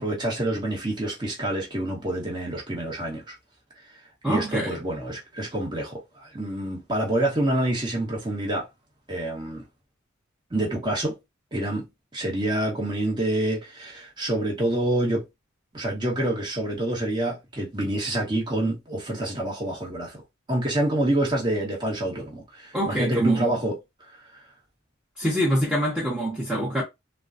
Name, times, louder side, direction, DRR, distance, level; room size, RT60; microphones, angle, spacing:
voice 1, 0.0-3.3 3.8-4.0 4.3-8.7 9.1-9.7 10.5-11.2 11.5-11.9 12.1-15.2 15.7-20.2 20.5-24.4, right 1 dB, 20° right, 1.1 m, -27 dB
voice 2, 4.2-4.8 22.7-23.5 25.2-26.8, right 1 dB, 5° right, 0.9 m, -25 dB
3.7 x 2.2 x 2.5 m
head